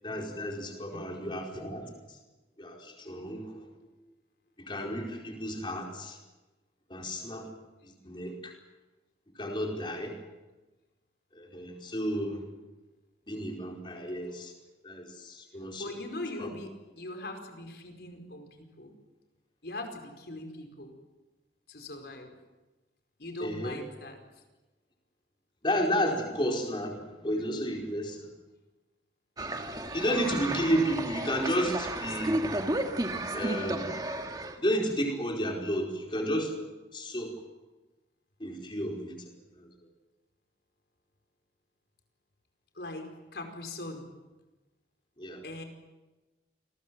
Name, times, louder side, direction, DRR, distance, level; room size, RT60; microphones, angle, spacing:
voice 1, 0.0-1.9 2.6-3.6 4.6-6.2 6.9-7.5 8.0-8.5 9.4-10.2 11.4-12.4 13.3-14.5 14.8-15.8 16.4-16.5 23.4-23.8 25.6-28.3 29.9-32.4 33.3-33.9 34.6-36.5 36.9-37.3 38.4-39.1 45.2-45.4, equal, 25° left, 1 dB, 4.7 m, -32 dB
voice 2, 0.9-1.4 15.8-18.9 19.6-20.9 21.7-22.3 23.2-24.2 42.7-43.1 43.3-44.1 45.4-45.6, left 2 dB, 65° left, 5 dB, 5.0 m, -41 dB
sound 1, 29.4-34.6, right 1 dB, 20° right, 1.8 m, -33 dB
28.5 x 21.5 x 7.8 m, 1.1 s
head